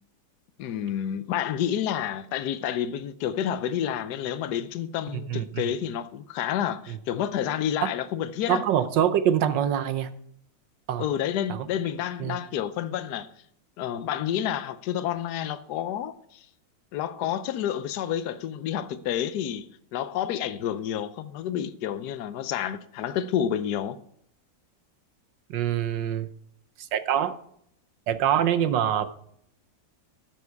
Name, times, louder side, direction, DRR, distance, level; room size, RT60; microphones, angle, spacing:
voice 1, 0.6-8.6 11.0-13.3 13.8-16.4 16.9-19.7 19.9-24.0, left 10 dB, 70° left, 1.2 m, -29 dB
voice 2, 5.1-5.6 6.9-7.0 8.5-10.1 10.9-11.1 11.5-11.7 12.2-12.4 25.5-26.3 26.8-27.4 28.1-29.1, right 9 dB, 80° right, 1.5 m, -25 dB
12.5 x 7.5 x 4.7 m
omnidirectional pair, 1.9 m